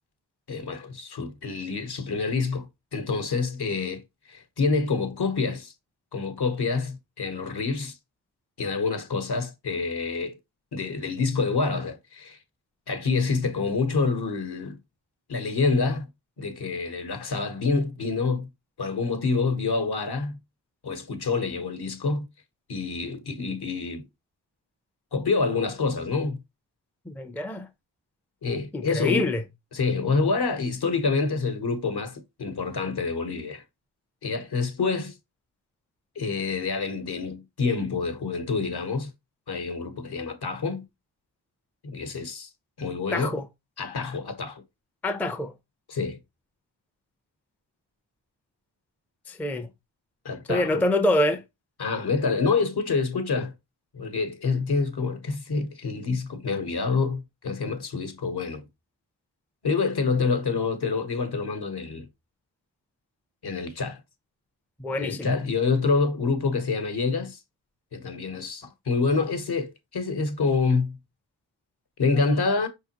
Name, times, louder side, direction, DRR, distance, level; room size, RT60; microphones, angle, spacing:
voice 1, 0.5-4.0 4.3-5.7 6.1-7.9 8.6-10.4 10.7-12.4 12.9-14.8 15.3-16.1 16.4-18.5 18.8-20.4 20.8-22.3 22.7-24.1 25.1-26.4 28.4-29.3 29.7-33.6 34.2-35.1 36.2-39.1 39.5-40.9 41.8-42.5 42.8-43.3 43.8-44.6 45.9-46.2 50.2-50.8 51.8-53.5 53.9-58.6 59.6-62.1 63.4-64.0 65.0-67.4 67.9-71.0 72.0-72.7, left 4 dB, 55° left, 1.0 m, -27 dB
voice 2, 27.1-27.7 28.7-29.4 43.1-43.5 45.0-45.5 49.3-49.7 50.5-51.4 64.8-65.3, left 1 dB, 5° left, 0.5 m, -26 dB
5.1 x 3.6 x 2.8 m
cardioid pair, 65°, 46 cm